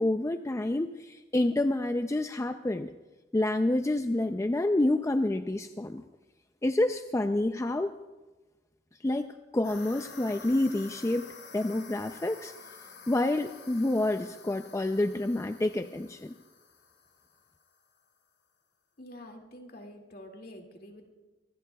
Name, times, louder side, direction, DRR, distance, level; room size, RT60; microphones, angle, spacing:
voice 1, 0.0-2.9 3.3-6.0 6.6-7.9 9.0-9.3 9.5-11.3 11.5-12.5 13.1-16.4, left 1 dB, 15° left, 7 dB, 0.4 m, -28 dB
sound 1, 9.6-17.8, left 5 dB, 75° left, 5.8 m, -50 dB
voice 2, 19.0-21.1, left 1 dB, 55° left, 3 dB, 2.2 m, -47 dB
24.0 x 19.5 x 2.3 m, 1.2 s
head